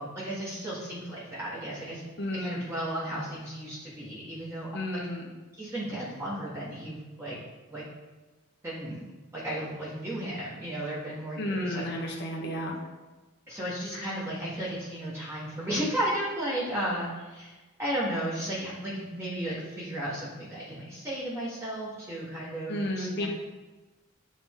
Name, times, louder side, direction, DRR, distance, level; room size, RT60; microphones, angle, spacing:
voice 1, 0.0-2.0 2.3-5.0 5.6-7.4 7.7-7.8 8.6-9.0 9.3-11.9 13.5-23.3, right 1 dB, 10° right, -8 dB, 1.5 m, -34 dB
voice 2, 2.2-2.6 4.7-5.3 11.4-12.7 22.7-23.3, left 1 dB, 50° left, -1 dB, 1.0 m, -32 dB
8.4 x 3.9 x 3.7 m, 1.2 s
head